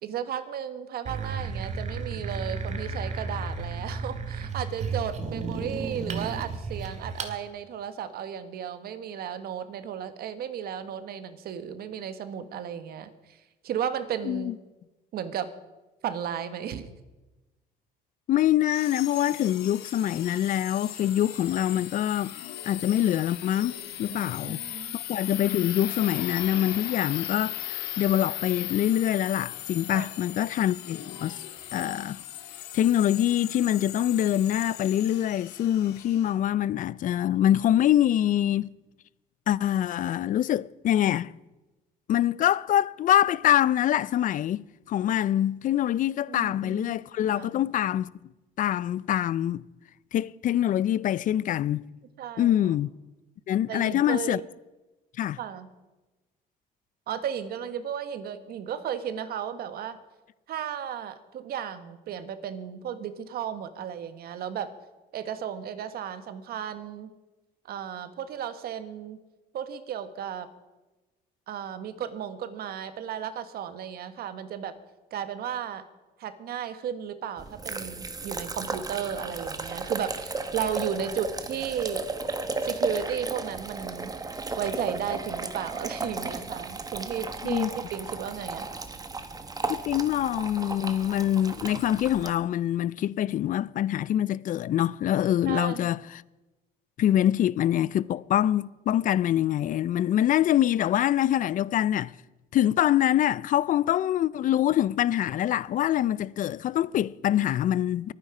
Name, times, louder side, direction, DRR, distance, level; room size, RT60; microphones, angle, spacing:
voice 1, 0.0-13.4 13.6-14.5 15.1-15.5 16.0-16.9 24.2-25.0 29.9-30.1 46.3-47.0 47.3-47.6 52.2-52.7 53.7-54.5 55.4-55.7 57.1-60.0 60.5-64.7 65.1-67.1 67.7-69.2 69.5-70.5 71.5-74.7 75.1-75.8 76.2-82.0 82.6-84.1 84.6-88.7 95.5-95.9, right 8 dB, 65° right, 1.5 m, -34 dB
sound 1, 1.0-7.3, right 4 dB, 45° right, 2.0 m, -33 dB
voice 2, 18.3-22.3 22.6-24.6 24.9-31.4 31.7-32.2 32.7-38.7 39.5-41.3 42.1-48.1 48.6-49.6 50.1-51.9 52.4-52.9 53.5-54.4 55.2-55.4 87.4-87.7 89.7-96.2 97.0-102.1 102.5-108.1, left 11 dB, 50° left, 0.5 m, -25 dB
sound 2, 18.6-36.3, left 13 dB, 85° left, 1.7 m, -38 dB
sound 3, 77.4-92.3, right 3 dB, 20° right, 1.4 m, -34 dB
23.0 x 9.7 x 5.0 m
cardioid pair, 110°, 17 cm